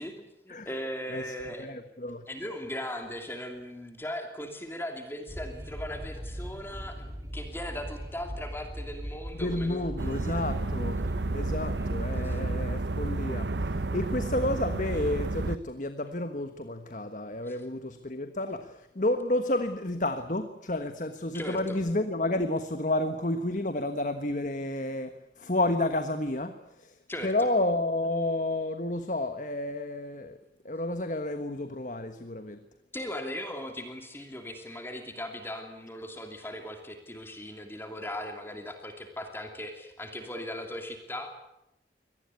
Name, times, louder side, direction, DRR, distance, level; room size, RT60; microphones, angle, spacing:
voice 1, 0.0-1.7 2.3-7.0 7.3-10.5 12.2-12.4 17.4-17.6 21.3-21.8 27.1-27.5 32.9-41.3, left 1 dB, 15° left, 5 dB, 2.8 m, -38 dB
voice 2, 1.6-2.2 9.4-11.0 11.3-25.1 25.4-26.9 27.2-30.3 30.6-32.6, left 1 dB, 45° left, 9 dB, 1.3 m, -30 dB
Train, 5.3-12.5, equal, 15° right, 4.9 m, -40 dB
sound 1, 10.0-15.6, right 2 dB, 80° right, 0.9 m, -31 dB
24.5 x 19.0 x 8.5 m, 0.87 s
head